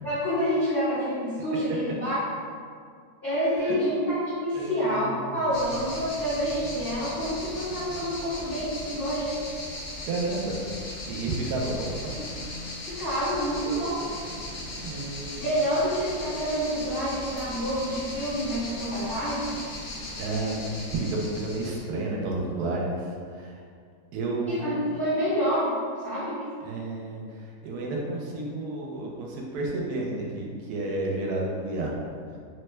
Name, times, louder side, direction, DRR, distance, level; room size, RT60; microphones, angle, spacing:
voice 1, 0.0-2.2 3.2-9.6 12.8-14.0 15.4-19.5 24.5-26.4, equal, 10° left, -15 dB, 0.9 m, -28 dB
voice 2, 4.5-5.5 10.0-10.6 11.0-12.2 14.7-15.5 20.1-23.6 24.1-24.8 26.6-32.0, right 2 dB, 85° right, -2 dB, 1.1 m, -31 dB
sound 1, 5.5-21.8, left 1 dB, 65° left, 0.8 m, -38 dB
3.0 x 2.1 x 3.2 m, 2.1 s
omnidirectional pair, 1.6 m